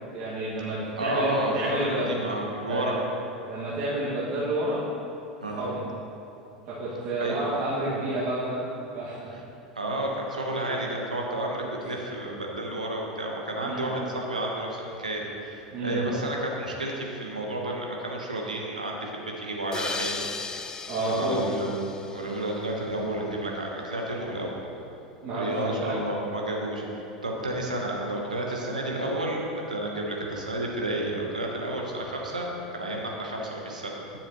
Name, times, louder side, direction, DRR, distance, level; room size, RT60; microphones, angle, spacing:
voice 1, 0.1-2.1 2.7-3.0 3.5-4.8 5.6-5.9 6.7-9.2 13.6-13.9 15.7-16.0 20.9-21.4 25.2-26.0, right 1 dB, 50° right, -9 dB, 1.8 m, -30 dB
voice 2, 1.0-3.0 5.4-5.6 7.2-7.4 9.3-9.4 9.7-20.3 21.0-24.6 25.3-29.4 29.7-33.9, right 1 dB, 85° right, -1 dB, 1.0 m, -31 dB
sound 1, 19.7-23.0, left 4 dB, 20° left, 0.4 m, -37 dB
10.0 x 7.2 x 3.0 m, 2.8 s
figure-of-eight pair, 80°, 4 cm